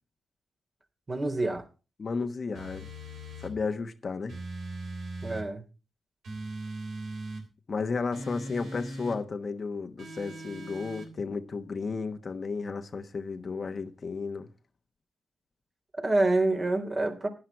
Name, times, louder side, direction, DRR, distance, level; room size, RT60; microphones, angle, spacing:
voice 1, 1.1-1.6 5.2-5.6 15.9-17.3, right 2 dB, 40° right, 3.4 m, -27 dB
voice 2, 2.0-2.9 3.4-4.4 7.7-14.5, left 4 dB, 50° left, 1.2 m, -33 dB
sound 1, 2.5-3.6 4.3-5.5 6.2-7.5 8.1-9.2 10.0-11.1, right 1 dB, 75° right, 3.5 m, -39 dB
11.5 x 10.5 x 4.7 m
supercardioid pair, 45°, 0 cm